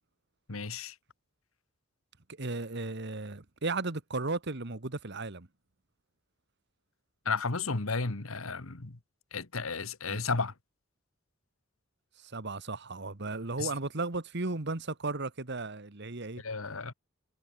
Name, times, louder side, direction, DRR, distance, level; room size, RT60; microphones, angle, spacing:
voice 1, 0.5-0.9 7.2-9.0 9.3-10.5 13.6-13.7 16.4-16.9, left 4 dB, 85° left, 1.7 m, -33 dB
voice 2, 2.4-5.5 10.1-10.2 12.2-16.4, right 3 dB, 55° right, 1.6 m, -35 dB
head